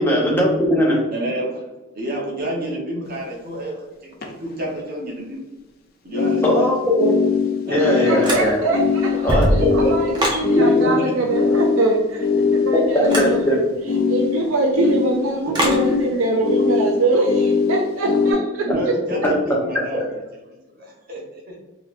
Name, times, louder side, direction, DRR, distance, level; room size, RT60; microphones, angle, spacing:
voice 1, 0.0-1.0 6.4-7.1 7.7-8.6 9.2-9.7 10.6-10.9 12.7-13.6, equal, 10° left, -4 dB, 0.7 m, -19 dB
voice 2, 1.1-1.6 1.9-3.9 4.4-5.4 6.0-6.7 7.7-8.1 9.5-10.3 10.7-11.0 13.3-13.7 15.5-15.7 18.6-20.2 20.5-21.2 21.5-21.6, equal, 45° right, -2 dB, 0.9 m, -29 dB
sound 1, 3.2-3.3 4.1-4.3 6.1-18.3, left 5 dB, 45° left, 0.4 m, -22 dB
voice 3, 7.8-13.6 14.1-18.7, right 2 dB, 70° right, 1 dB, 0.4 m, -23 dB
sound 2, 8.2-8.8 9.1-10.5 13.0-13.4 15.5-15.9, equal, 20° right, 0.7 m, -22 dB
3.8 x 2.9 x 2.5 m, 1.1 s
head